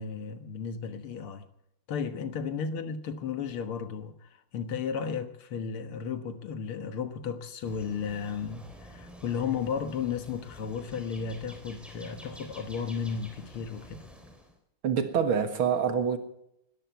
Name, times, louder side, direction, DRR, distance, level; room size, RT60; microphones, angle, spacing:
voice 1, 0.0-1.5 1.9-14.0, left 6 dB, 85° left, 2.2 m, -34 dB
sound 1, 7.6-14.6, equal, ahead, 3.3 m, -49 dB
voice 2, 14.8-16.2, right 7 dB, 75° right, 2.4 m, -26 dB
20.5 x 13.5 x 4.6 m
omnidirectional pair, 2.3 m